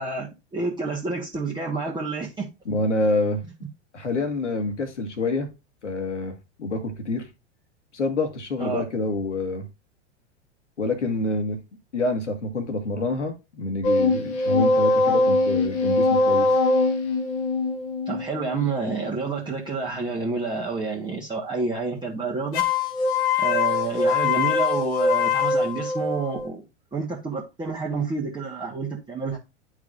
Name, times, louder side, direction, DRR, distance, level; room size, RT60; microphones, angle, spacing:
voice 1, 0.0-2.5 8.6-8.8 18.1-22.6 23.4-26.6 26.9-29.4, right 4 dB, 15° right, 1.4 m, -29 dB
voice 2, 2.7-3.4 3.9-5.5 5.8-7.3 7.9-9.7 10.8-11.6 11.9-16.6, left 2 dB, 80° left, 1.8 m, -27 dB
sound 1, 13.8-19.2 22.5-26.5, left 3 dB, 50° left, 1.3 m, -22 dB
10.5 x 4.9 x 2.5 m
figure-of-eight pair, 95°, 35 cm